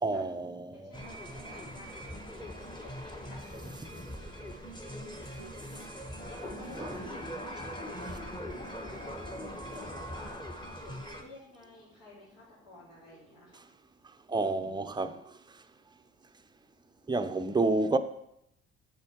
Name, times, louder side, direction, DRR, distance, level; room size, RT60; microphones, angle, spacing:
voice 1, 0.0-0.9 6.8-6.9 14.3-15.2 17.1-18.0, right 3 dB, 15° right, 0.7 m, -29 dB
voice 2, 0.7-7.2 7.5-9.1 9.7-10.3 10.8-13.6, left 2 dB, 65° left, 3.3 m, -52 dB
sound 1, 0.9-11.2, equal, 15° left, 1.4 m, -41 dB
7.6 x 7.3 x 4.6 m
hypercardioid pair, 55°, 34 cm